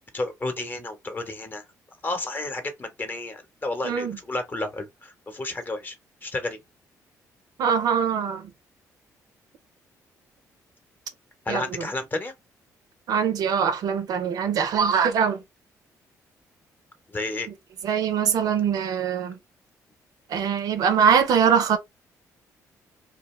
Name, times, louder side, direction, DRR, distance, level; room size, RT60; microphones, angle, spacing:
voice 1, 0.1-1.6 2.0-6.0 6.2-6.6 11.5-12.3 17.1-17.5, left 2 dB, 30° left, 0.9 m, -31 dB
voice 2, 3.8-4.2 7.6-8.5 11.5-11.9 13.1-15.4 17.8-19.4 20.3-21.8, right 7 dB, 70° right, 0.6 m, -22 dB
2.5 x 2.3 x 3.1 m
cardioid pair, 85°, 7 cm